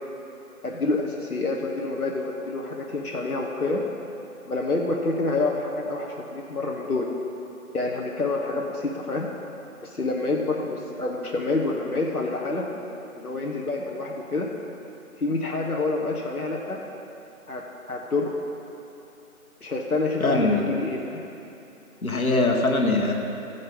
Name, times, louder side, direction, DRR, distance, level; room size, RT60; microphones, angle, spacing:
voice 1, 0.6-3.8 4.5-7.1 7.7-9.3 9.8-12.7 13.1-14.5 15.2-16.8 17.5-18.3 19.6-21.2, left 2 dB, 90° left, -1 dB, 1.2 m, -27 dB
voice 2, 20.2-20.7 22.0-23.1, left 2 dB, 75° left, 1 dB, 1.5 m, -22 dB
15.0 x 5.4 x 5.4 m, 2.9 s
figure-of-eight pair, 175°, 43 cm